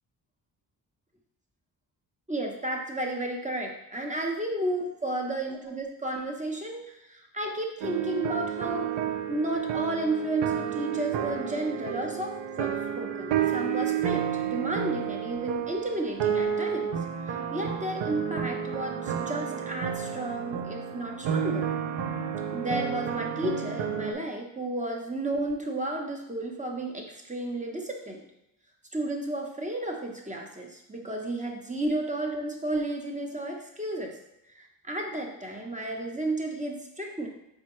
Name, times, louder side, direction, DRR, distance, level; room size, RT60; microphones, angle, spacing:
voice 1, 2.3-6.8 7.1-8.9 9.3-17.0 17.2-21.7 22.5-28.2 28.9-34.2 34.5-37.3, right 1 dB, 15° right, 1 dB, 0.9 m, -32 dB
sound 1, 7.8-24.1, right 8 dB, 65° right, 0.6 m, -31 dB
4.3 x 3.5 x 3.1 m, 0.87 s
supercardioid pair, 45°, 48 cm